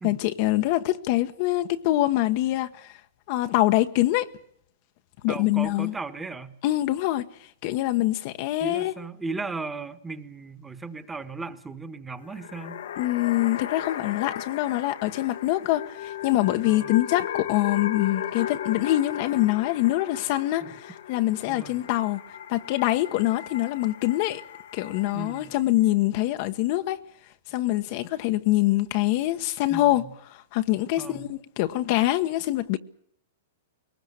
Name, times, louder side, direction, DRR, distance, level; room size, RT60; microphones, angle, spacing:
voice 1, 0.0-2.9 3.3-4.3 5.2-5.9 6.6-7.3 7.6-8.9 13.0-22.2 22.5-24.4 24.7-27.0 27.5-30.0 30.3-32.8, left 16 dB, 50° left, 1.1 m, -24 dB
voice 2, 5.3-6.5 8.6-12.8 16.6-16.9 20.6-20.7 21.5-21.8 25.1-25.5 29.7-30.1 31.0-31.3, right 4 dB, 10° right, 1.5 m, -36 dB
sound 1, 12.2-25.6, left 10 dB, 70° left, 1.4 m, -36 dB
21.5 x 19.5 x 8.2 m
hypercardioid pair, 135°, 0 cm